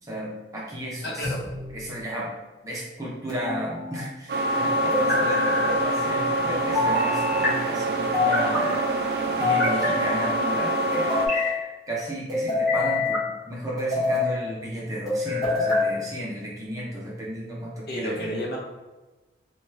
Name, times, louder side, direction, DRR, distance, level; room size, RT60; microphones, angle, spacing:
voice 1, 0.0-1.3 1.7-2.3 2.6-8.7 9.4-18.3, equal, 20° right, -5 dB, 0.6 m, -34 dB
voice 2, 1.0-1.4 17.9-18.6, equal, 55° left, -2 dB, 0.6 m, -30 dB
sound 1, 1.2-1.9 3.3-4.0 4.9-5.7 6.7-7.5 8.1-8.8 9.4-10.3 10.9-11.5 12.3-13.2 13.8-14.3 15.1-15.9, left 2 dB, ahead, 1.3 m, -25 dB
sound 2, 4.3-11.3, right 1 dB, 55° right, 0.4 m, -25 dB
2.9 x 2.3 x 3.2 m, 1.2 s
head